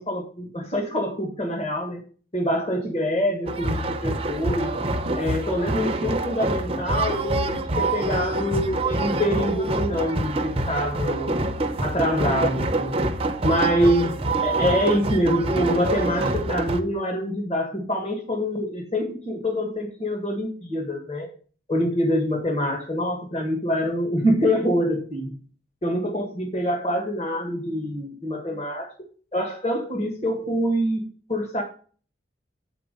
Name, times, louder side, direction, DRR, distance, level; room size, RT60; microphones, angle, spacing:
voice 1, 0.0-2.0 2.3-4.7 5.1-11.3 11.8-13.0 13.4-21.3 21.7-25.4 25.8-28.9 29.3-31.6, equal, 35° left, 1 dB, 1.7 m, -25 dB
sound 1, 3.5-16.8, right 2 dB, 30° right, 0.7 m, -26 dB
8.4 x 4.5 x 5.3 m, 0.41 s
head